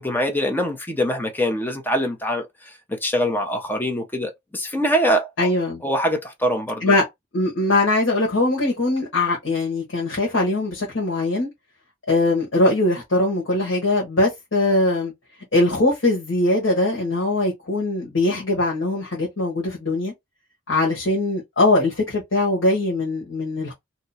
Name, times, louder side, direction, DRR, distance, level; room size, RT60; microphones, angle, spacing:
voice 1, 0.0-2.5 3.0-5.5 5.8-6.9, equal, 10° left, 0.7 m, -23 dB
voice 2, 5.4-5.8 6.8-7.0 7.3-11.5 12.1-15.1 15.5-20.1 20.7-23.7, left 2 dB, 75° left, 1.3 m, -21 dB
2.8 x 2.3 x 4.1 m
head